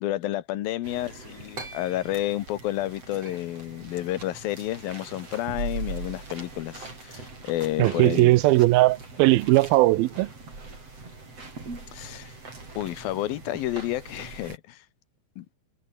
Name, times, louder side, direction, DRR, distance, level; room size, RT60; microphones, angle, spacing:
voice 1, 0.0-8.4 11.9-12.3 12.8-14.8 15.4-15.5, left 15 dB, 80° left, 2.8 m, -30 dB
sound 1, 0.8-14.6, right 3 dB, 40° right, 8.3 m, -41 dB
voice 2, 7.8-10.3, right 18 dB, 90° right, 2.5 m, -19 dB
omnidirectional pair, 4.3 m